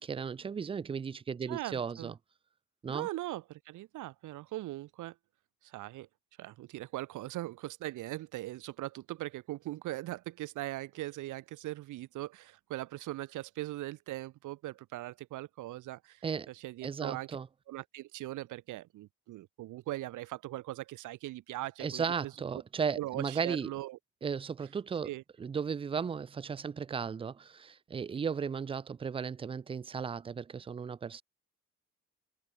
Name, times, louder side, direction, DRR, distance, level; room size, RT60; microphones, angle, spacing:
voice 1, 0.0-2.1 2.8-3.1 16.2-16.5 16.8-17.5 21.8-23.7 24.2-25.1 25.4-31.2, right 6 dB, 20° right, 0.3 m, -35 dB
voice 2, 1.4-2.1 2.9-5.1 5.6-6.1 6.4-17.3 17.7-22.6 23.0-24.0 25.0-25.2, right 16 dB, 80° right, 0.9 m, -40 dB
cardioid pair, 90°, 30 cm